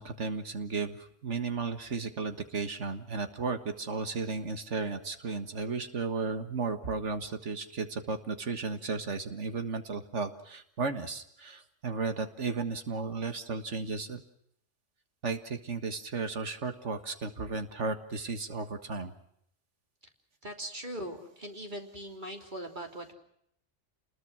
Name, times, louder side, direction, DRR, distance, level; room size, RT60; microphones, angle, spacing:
voice 1, 0.0-14.2 15.2-19.1, right 4 dB, 75° right, 8 dB, 1.9 m, -34 dB
voice 2, 20.4-23.1, equal, 40° right, 3 dB, 3.4 m, -40 dB
28.5 x 21.0 x 6.2 m, 0.72 s
omnidirectional pair, 1.2 m